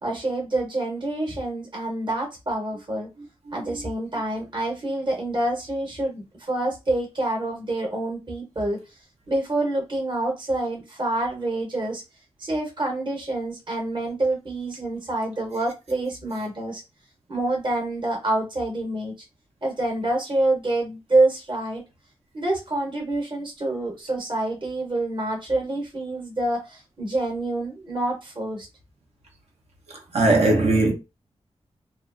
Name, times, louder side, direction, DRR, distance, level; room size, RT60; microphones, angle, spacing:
voice 1, 0.0-3.1 3.5-8.8 9.3-12.0 12.4-16.8 17.3-19.1 19.6-21.8 22.3-28.7, right 2 dB, 50° right, 1.0 m, -27 dB
voice 2, 29.9-30.9, right 2 dB, 85° right, 0.9 m, -19 dB
2.7 x 2.4 x 2.5 m
wide cardioid pair, 85°, 11 cm